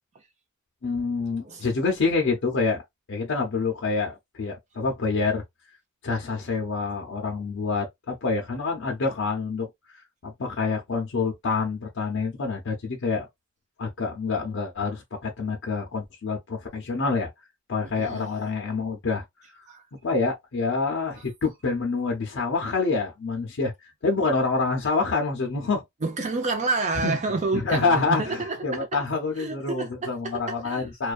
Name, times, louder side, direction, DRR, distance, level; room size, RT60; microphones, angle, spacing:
voice 1, 0.8-2.8 3.1-5.4 6.0-13.3 13.8-17.3 17.7-19.6 20.0-23.7 24.0-25.8 27.0-27.1 27.5-31.1, left 4 dB, 60° left, 0.6 m, -27 dB
voice 2, 17.9-18.3 19.7-19.9 26.0-29.0 29.4-30.9, right 3 dB, 35° right, 0.5 m, -29 dB
2.4 x 2.2 x 2.3 m
head